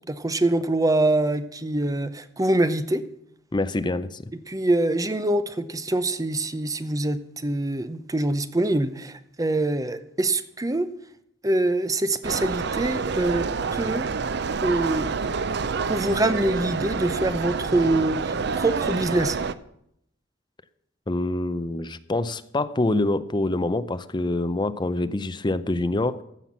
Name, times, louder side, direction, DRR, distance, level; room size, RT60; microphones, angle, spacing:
voice 1, 0.1-3.1 4.5-10.9 11.4-14.1 14.6-15.1 15.9-19.4, right 2 dB, 20° right, 12 dB, 0.7 m, -24 dB
voice 2, 3.5-4.2 21.1-26.2, left 2 dB, 25° left, 13 dB, 0.5 m, -25 dB
sound 1, 12.2-19.5, right 5 dB, 60° right, 0.6 m, -28 dB
15.0 x 5.8 x 7.1 m, 0.74 s
head